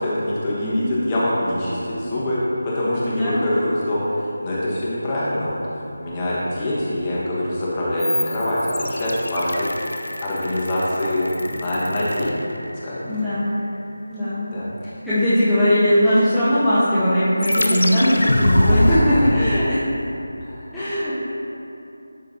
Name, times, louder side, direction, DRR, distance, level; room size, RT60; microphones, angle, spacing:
voice 1, 0.0-5.6 6.0-9.7 10.2-12.3 12.8-13.2 14.5-14.7 18.9-19.3 20.4-20.7, left 1 dB, 20° left, -8 dB, 1.5 m, -24 dB
voice 2, 0.6-0.9 3.1-3.4 13.1-13.5 14.1-14.5 15.0-19.8 20.7-21.3, equal, ahead, -18 dB, 0.8 m, -19 dB
sound 1, 8.0-13.0 17.4-19.0, left 1 dB, 80° left, 0.7 m, -24 dB
12.0 x 5.0 x 2.8 m, 2.8 s
figure-of-eight pair, 170°, 0 cm